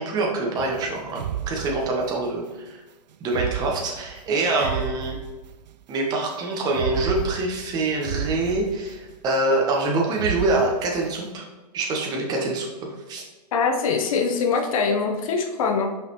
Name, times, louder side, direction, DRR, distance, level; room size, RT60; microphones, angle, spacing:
voice 1, 0.0-2.8 3.2-5.2 5.9-11.4 11.7-12.7 13.1-13.2, right 2 dB, 20° right, 0 dB, 1.1 m, -25 dB
sound 1, 0.6-2.3 3.3-5.8 6.7-9.3 10.1-11.3, right 10 dB, 85° right, 0.4 m, -32 dB
voice 2, 13.5-15.9, left 5 dB, 55° left, 3 dB, 0.9 m, -23 dB
5.6 x 5.5 x 3.1 m, 1.2 s
hypercardioid pair, 150°, 21 cm